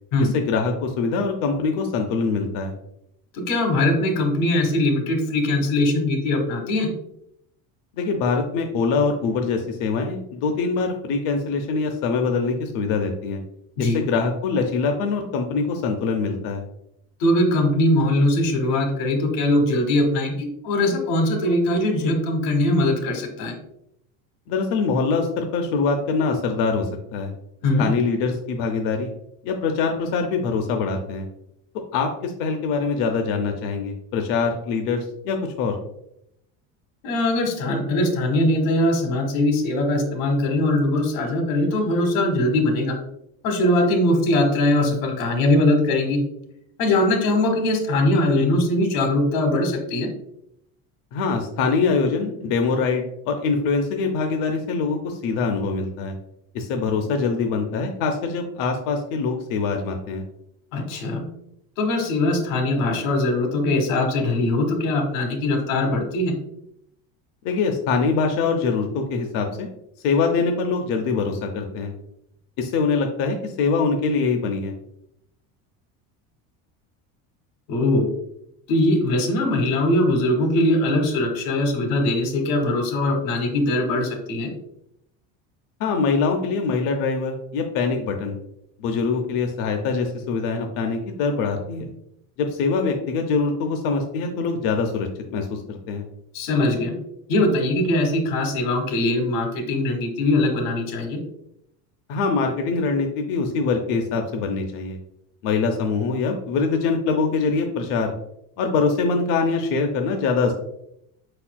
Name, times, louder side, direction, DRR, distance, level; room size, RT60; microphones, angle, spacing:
voice 1, 0.3-2.7 8.0-13.4 13.8-16.6 24.5-27.3 27.8-29.1 29.4-31.2 31.9-35.8 51.1-56.1 56.5-60.2 67.4-69.7 70.0-71.9 72.6-74.7 85.8-88.4 88.8-91.9 92.4-96.0 102.1-105.0 105.4-108.1 108.6-110.5, left 4 dB, 55° left, 4 dB, 0.6 m, -23 dB
voice 2, 3.3-6.9 13.8-14.0 17.2-23.5 27.6-27.9 37.0-42.9 43.4-46.2 46.8-50.1 60.7-61.2 61.8-66.3 77.7-78.1 78.7-84.5 96.3-96.9 97.3-101.2, left 1 dB, 90° left, 4 dB, 1.3 m, -21 dB
5.0 x 4.3 x 2.2 m, 0.77 s
cardioid pair, 155°, 39 cm